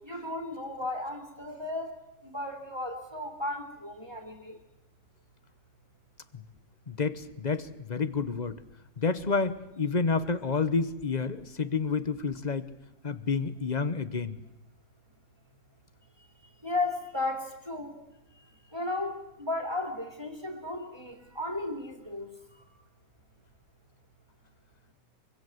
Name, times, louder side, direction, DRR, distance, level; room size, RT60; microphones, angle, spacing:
voice 1, 0.0-1.9 2.3-4.6 16.6-17.9 18.7-19.1 19.4-22.3, left 2 dB, 15° right, 5 dB, 3.0 m, -34 dB
voice 2, 6.9-8.6 9.0-12.7 13.0-14.4, left 4 dB, 30° left, 14 dB, 0.8 m, -29 dB
24.5 x 23.5 x 7.9 m, 0.90 s
omnidirectional pair, 1.9 m